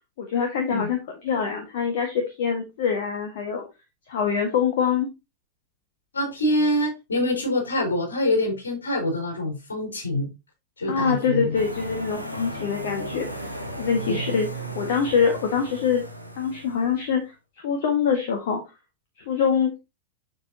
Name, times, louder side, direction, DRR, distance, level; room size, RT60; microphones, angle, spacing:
voice 1, 0.2-3.6 4.1-5.1 10.9-14.5 14.7-16.0 16.4-17.3 17.6-18.6 19.2-19.8, left 6 dB, 55° left, 1.6 m, -24 dB
voice 2, 6.1-10.3 10.8-11.6 14.1-14.2, left 1 dB, 70° left, 4.4 m, -25 dB
sound 1, 11.5-17.0, right 1 dB, 85° left, 1.2 m, -35 dB
7.8 x 7.0 x 2.8 m
figure-of-eight pair, 90°, 0 cm